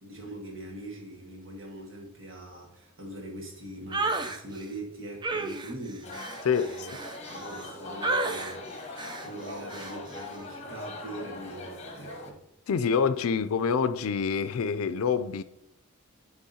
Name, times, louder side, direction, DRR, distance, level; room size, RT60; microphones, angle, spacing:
voice 1, 0.0-6.1 6.6-6.9 7.3-12.4, right 1 dB, 65° right, 1.8 m, -42 dB
sound 1, 3.9-4.4 5.2-7.7 8.0-8.6 9.0-9.3 9.7-10.0, right 3 dB, 20° right, 0.4 m, -32 dB
sound 2, 6.0-12.3, left 2 dB, 30° left, 0.9 m, -41 dB
voice 2, 6.4-6.9 12.7-15.4, left 6 dB, 85° left, 0.4 m, -26 dB
9.8 x 3.5 x 2.8 m
head